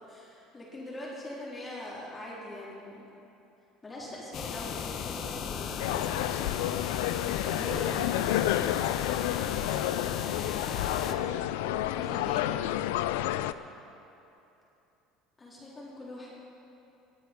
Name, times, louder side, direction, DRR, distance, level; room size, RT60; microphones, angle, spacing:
voice 1, 0.1-3.1 3.8-6.1 7.5-8.7 11.9-12.5 15.4-16.3, left 1 dB, 25° left, -6 dB, 3.9 m, -42 dB
sound 1, 4.3-11.1, left 7 dB, 50° left, 1.0 m, -36 dB
sound 2, 5.8-13.5, left 13 dB, 75° left, 0.3 m, -30 dB
voice 2, 7.4-8.1 10.7-12.3, equal, 20° right, -4 dB, 3.6 m, -45 dB
19.0 x 9.0 x 5.3 m, 2.8 s
hypercardioid pair, 65°, 0 cm